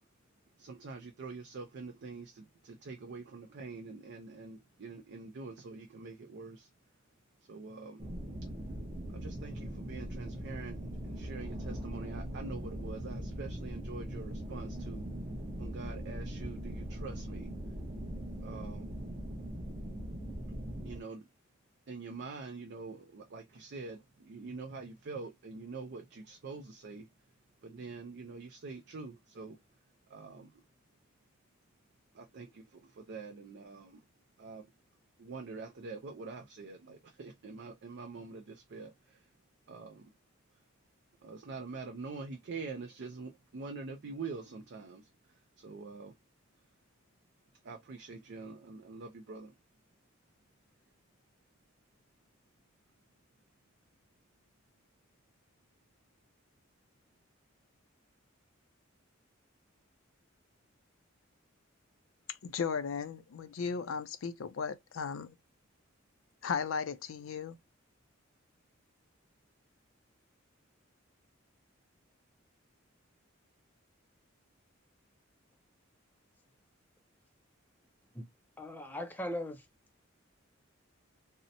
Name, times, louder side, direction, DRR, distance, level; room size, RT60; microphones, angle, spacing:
voice 1, 0.6-6.7 7.4-8.1 9.1-15.1 15.6-17.5 18.4-18.9 20.8-21.3 21.9-27.1 27.6-29.6 30.1-30.6 32.1-34.0 34.4-34.7 35.2-39.3 39.7-40.1 41.2-46.2 47.6-49.6, right 4 dB, 55° right, 0.4 m, -45 dB
sound 1, 8.0-21.0, right 1 dB, 25° right, 0.7 m, -40 dB
voice 2, 62.4-65.4 66.4-67.5, left 6 dB, 75° left, 0.4 m, -36 dB
voice 3, 78.6-79.6, left 1 dB, 10° left, 0.4 m, -39 dB
2.7 x 2.1 x 2.6 m
head